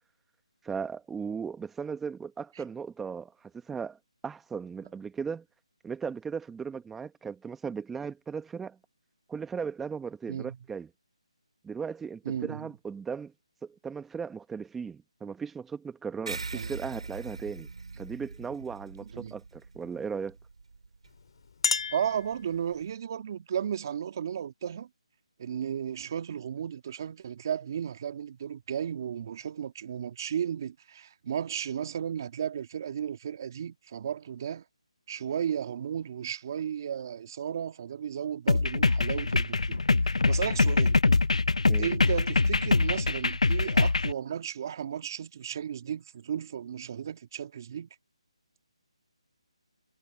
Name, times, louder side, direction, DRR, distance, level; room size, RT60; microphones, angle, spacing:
voice 1, 0.6-3.3 3.7-4.0 4.2-5.4 5.8-8.8 9.3-10.9 11.6-13.3 13.6-17.7 18.0-20.4 41.7-41.9, right 6 dB, 5° right, 1.2 m, -37 dB
voice 2, 12.3-12.7 16.5-16.7 19.1-19.4 21.9-24.9 25.4-34.6 35.1-41.0 41.8-47.9, right 8 dB, 35° right, 1.9 m, -34 dB
sound 1, 16.3-21.1, right 4 dB, 75° right, 3.9 m, -42 dB
Chink clink, 21.1-22.9, left 5 dB, 50° left, 2.6 m, -33 dB
sound 2, 38.5-44.1, left 3 dB, 85° left, 0.8 m, -24 dB
figure-of-eight pair, 160°, 3 cm